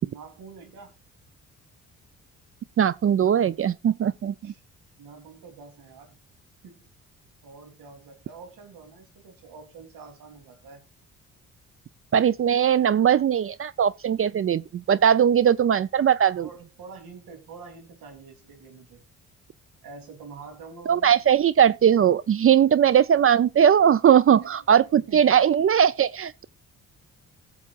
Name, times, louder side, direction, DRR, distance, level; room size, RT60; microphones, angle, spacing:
voice 1, 0.0-0.9 4.4-4.6 5.0-6.2 6.6-6.8 7.4-10.8 16.4-19.0 19.8-21.1 22.9-23.0 24.4-24.5 24.9-25.3, right 5 dB, 75° right, 3.3 m, -46 dB
voice 2, 2.8-4.5 12.1-16.5 20.9-26.4, right 9 dB, 40° right, 0.5 m, -20 dB
19.0 x 7.1 x 2.4 m
supercardioid pair, 55°, 34 cm